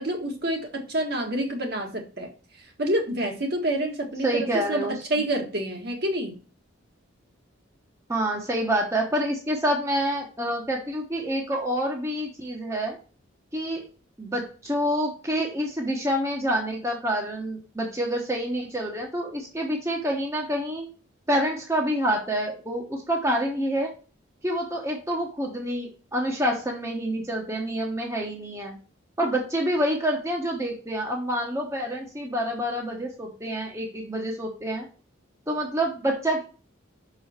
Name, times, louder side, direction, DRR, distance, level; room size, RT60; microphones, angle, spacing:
voice 1, 0.0-2.3 2.8-6.3, right 1 dB, 50° right, 1 dB, 1.6 m, -28 dB
voice 2, 4.2-4.9 8.1-13.0 13.5-13.8 14.2-20.9 21.3-23.9 24.4-28.7 29.2-34.9 35.5-36.4, equal, 15° right, 0 dB, 1.1 m, -27 dB
6.1 x 5.0 x 4.3 m, 0.36 s
head